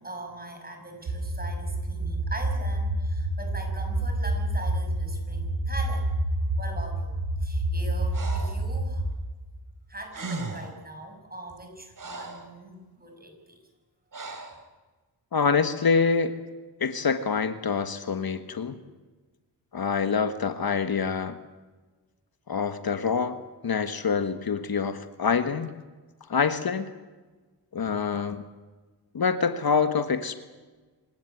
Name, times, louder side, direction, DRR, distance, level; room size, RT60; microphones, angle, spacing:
voice 1, 0.0-6.1 6.5-7.1 7.4-9.1 9.9-13.6, right 1 dB, 20° right, 3 dB, 6.8 m, -41 dB
sound 1, 1.1-9.1, right 1 dB, 85° right, 6.2 m, -28 dB
Breathing, 8.1-8.6 9.8-9.9 10.1-10.8 11.5-12.5 14.1-14.6, right 3 dB, 50° right, 3.5 m, -37 dB
voice 2, 15.3-16.3 16.8-18.8 19.7-21.4 22.5-25.7 26.3-26.9 27.7-28.4 29.1-30.3, left 5 dB, 60° left, 10 dB, 1.5 m, -26 dB
26.5 x 16.5 x 9.4 m, 1.3 s
wide cardioid pair, 100°, 42 cm